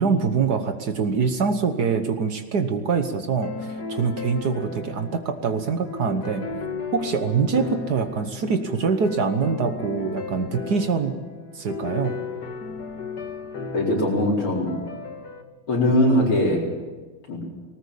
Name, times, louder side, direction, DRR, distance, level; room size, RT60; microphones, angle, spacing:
voice 1, 0.0-6.5 6.9-11.1 11.5-12.2, right 5 dB, 55° right, 8 dB, 1.6 m, -24 dB
sound 1, 3.4-15.4, left 4 dB, 50° left, 1.9 m, -35 dB
voice 2, 13.7-14.8 15.7-16.7 17.3-17.4, left 1 dB, 80° left, -2 dB, 5.6 m, -21 dB
19.5 x 18.5 x 8.5 m, 1.3 s
omnidirectional pair, 2.4 m